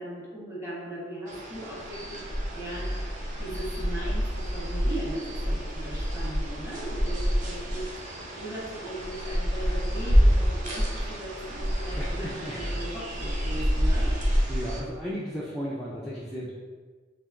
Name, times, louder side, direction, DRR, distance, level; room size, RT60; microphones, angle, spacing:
voice 1, 0.0-2.2 2.5-2.9 3.4-7.9 8.3-14.1, right 1 dB, 15° right, -7 dB, 1.2 m, -38 dB
sound 1, 1.3-14.8, equal, 45° right, 0.6 m, -28 dB
voice 2, 12.0-12.8 13.5-13.7 14.5-16.5, equal, ahead, -7 dB, 0.4 m, -35 dB
3.3 x 2.8 x 3.7 m, 1.4 s
head